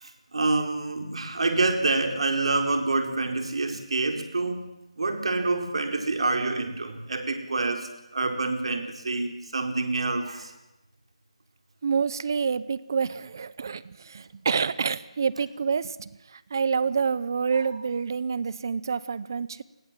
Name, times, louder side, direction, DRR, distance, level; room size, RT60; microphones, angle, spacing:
voice 1, 0.0-4.7 5.0-10.5 17.5-17.6, right 3 dB, 55° right, 5 dB, 4.4 m, -27 dB
voice 2, 11.8-19.6, right 5 dB, 35° right, 18 dB, 0.9 m, -28 dB
28.0 x 20.5 x 7.6 m, 0.97 s
figure-of-eight pair, 170°, 4 cm